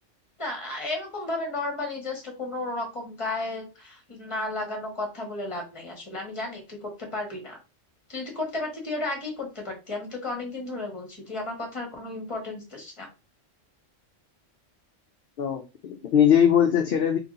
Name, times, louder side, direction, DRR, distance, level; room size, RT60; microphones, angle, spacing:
voice 1, 0.4-7.6 8.1-13.1, left 2 dB, 25° left, 2 dB, 1.3 m, -33 dB
voice 2, 15.4-17.2, left 9 dB, 60° left, 5 dB, 0.6 m, -21 dB
3.0 x 2.7 x 3.8 m, 0.29 s
omnidirectional pair, 1.3 m